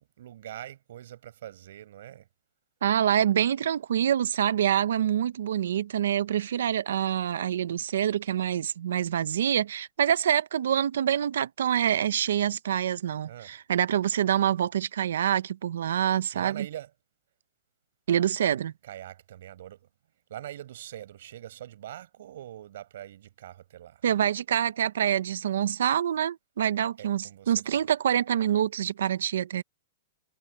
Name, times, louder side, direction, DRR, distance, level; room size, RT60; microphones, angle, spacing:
voice 1, 0.2-2.3 13.3-13.6 16.3-16.9 18.8-19.9 20.3-24.0 27.0-27.8, right 12 dB, 60° right, 5.3 m, -43 dB
voice 2, 2.8-16.7 18.1-18.7 24.0-29.6, right 10 dB, 80° right, 0.6 m, -26 dB
hypercardioid pair, 170°, 0 cm